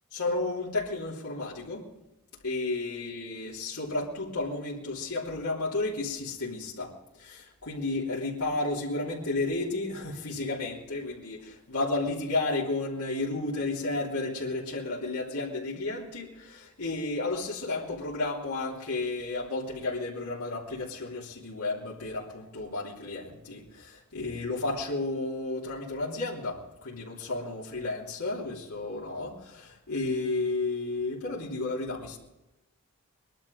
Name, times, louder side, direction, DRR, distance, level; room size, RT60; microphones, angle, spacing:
voice 1, 0.1-1.9 2.4-6.9 7.2-32.2, left 2 dB, 90° left, 3.3 m, -32 dB
22.0 x 11.5 x 5.3 m
head